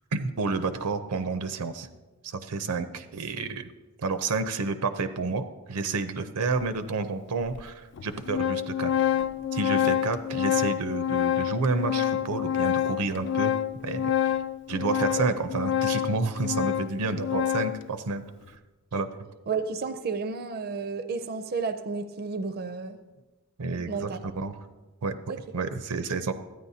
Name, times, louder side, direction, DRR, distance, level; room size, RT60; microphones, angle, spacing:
voice 1, 0.1-1.9 2.2-3.7 4.0-8.9 9.5-13.6 13.8-14.3 14.7-18.2 18.9-19.1 23.6-24.6 25.0-25.1 25.5-26.3, right 4 dB, 90° right, 10 dB, 0.6 m, -30 dB
Organ, 6.6-6.7 7.5-7.6 8.0-17.9, left 10 dB, 50° left, 0.3 m, -27 dB
voice 2, 19.5-23.0 23.9-24.2 25.3-25.4, right 4 dB, 45° right, 10 dB, 0.4 m, -32 dB
13.0 x 9.4 x 2.7 m, 1.2 s
head